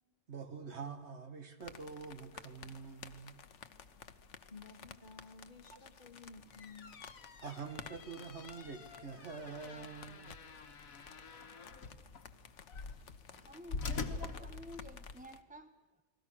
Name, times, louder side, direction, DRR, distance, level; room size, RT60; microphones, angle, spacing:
voice 1, 0.3-3.4 5.7-5.8 7.4-10.4, right 5 dB, 55° right, 1.8 m, -46 dB
sound 1, 1.6-15.4, left 6 dB, 60° left, 1.3 m, -55 dB
voice 2, 4.5-7.0, left 4 dB, 35° left, 1.5 m, -54 dB
sound 2, 6.3-15.2, left 4 dB, 85° left, 1.8 m, -45 dB
voice 3, 13.3-16.0, equal, 10° right, 0.5 m, -52 dB
29.5 x 20.5 x 6.2 m
omnidirectional pair, 1.4 m